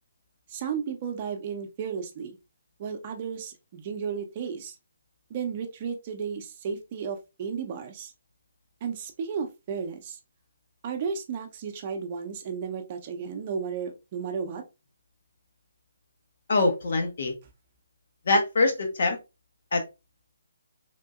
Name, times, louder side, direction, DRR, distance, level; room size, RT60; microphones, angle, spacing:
voice 1, 0.5-2.4 2.8-4.8 5.3-8.1 8.8-10.2 10.8-14.6, right 6 dB, 35° right, 0.6 m, -33 dB
voice 2, 16.5-17.3 18.3-19.2 19.7-19.8, left 2 dB, 60° left, 0.9 m, -23 dB
3.5 x 2.6 x 2.4 m
figure-of-eight pair, 145°, 0 cm